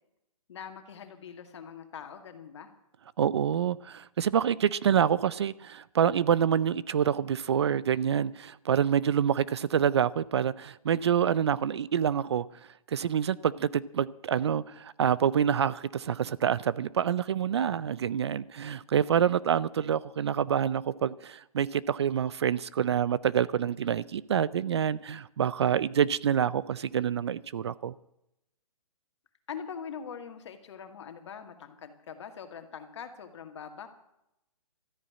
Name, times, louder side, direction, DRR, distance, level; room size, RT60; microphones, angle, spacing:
voice 1, 0.5-2.7 29.5-33.9, left 7 dB, 50° left, 2.1 m, -43 dB
voice 2, 3.2-12.5 12.9-27.9, right 8 dB, 45° right, 0.4 m, -27 dB
13.5 x 9.7 x 8.7 m
hypercardioid pair, 170°, 19 cm